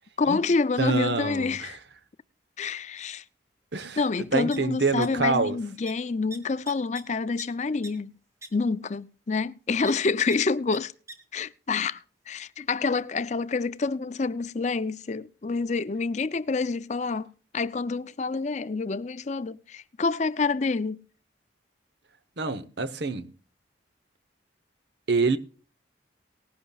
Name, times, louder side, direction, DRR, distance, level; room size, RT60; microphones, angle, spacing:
voice 1, 0.2-1.8 2.6-3.2 4.0-8.1 8.5-10.9 11.3-21.0, left 4 dB, 35° left, 0.5 m, -28 dB
voice 2, 0.8-1.8 3.7-4.0 4.3-5.6 22.4-23.3 25.1-25.4, right 3 dB, 60° right, 0.9 m, -26 dB
sound 1, 3.8-3.9 4.2-5.1 5.3-5.6 5.9-6.0 6.3-7.5 7.8-7.9 8.4-8.5 9.8-9.9 10.3-10.4 10.7-10.8 11.1-11.2, right 1 dB, 15° right, 1.6 m, -42 dB
19.0 x 11.0 x 2.3 m
head